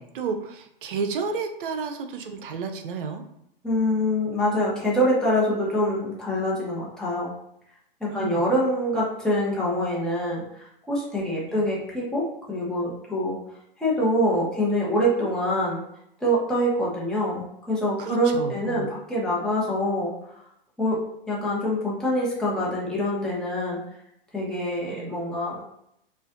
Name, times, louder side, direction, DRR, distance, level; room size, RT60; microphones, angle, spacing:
voice 1, 0.0-3.2 8.1-8.4 11.5-11.6 18.0-18.9 24.8-25.1, right 5 dB, 65° right, 7 dB, 0.7 m, -31 dB
voice 2, 3.6-7.3 8.0-13.4 13.8-15.8 16.2-20.1 20.8-21.0 21.3-23.8 24.3-25.5, equal, ahead, -7 dB, 1.1 m, -25 dB
4.9 x 2.5 x 2.6 m, 0.76 s
hypercardioid pair, 120°, 29 cm